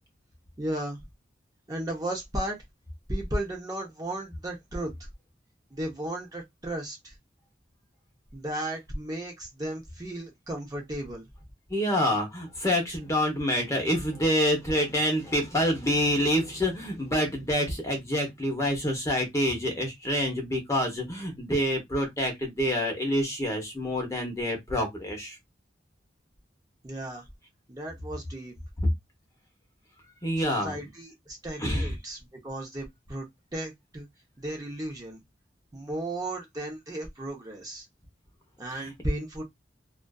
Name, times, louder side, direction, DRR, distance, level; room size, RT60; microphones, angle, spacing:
voice 1, 0.6-1.0 1.7-2.6 3.1-5.1 5.7-7.1 8.3-11.2 26.8-27.3 27.7-28.5 30.4-33.3 33.5-34.1 34.4-35.2 35.7-37.8 38.6-39.4, right 1 dB, 20° right, 0.7 m, -34 dB
voice 2, 11.7-25.4 30.2-30.8 31.6-31.9 38.7-38.9, equal, 15° left, 0.8 m, -27 dB
2.5 x 2.3 x 2.2 m
head